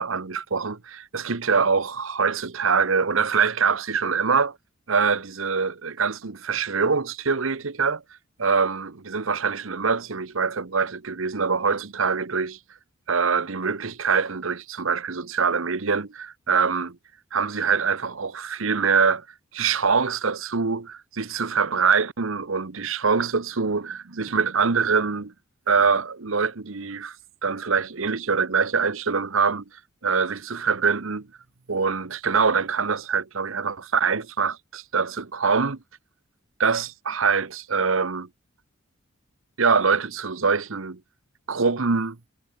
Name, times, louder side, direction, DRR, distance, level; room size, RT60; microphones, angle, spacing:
voice 1, 0.0-4.6 4.9-8.0 8.4-12.6 13.1-17.0 17.3-19.2 19.5-25.3 25.7-27.2 27.4-29.6 30.0-31.3 31.7-35.8 36.6-38.3 39.6-41.0 41.5-42.2, right 5 dB, 75° right, 1.0 m, -24 dB
head